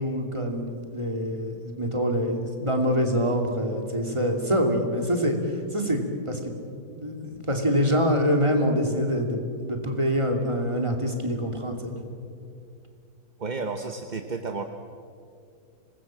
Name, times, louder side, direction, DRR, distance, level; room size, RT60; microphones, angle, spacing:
voice 1, 0.0-6.0 6.3-6.4 6.9-11.9, equal, 20° right, 3 dB, 2.7 m, -25 dB
voice 2, 13.4-14.6, right 4 dB, 35° right, 6 dB, 0.9 m, -32 dB
25.5 x 20.0 x 7.6 m, 2.4 s
omnidirectional pair, 1.7 m